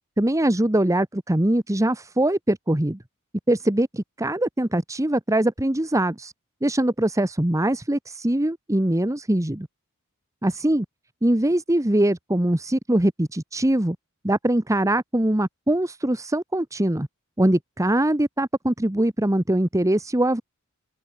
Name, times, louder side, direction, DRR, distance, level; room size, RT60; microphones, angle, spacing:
voice 1, 0.2-3.0 3.5-6.3 6.6-9.7 10.4-10.8 11.2-14.0 14.2-17.1 17.4-20.4, right 1 dB, 15° right, 1.1 m, -22 dB
open air
head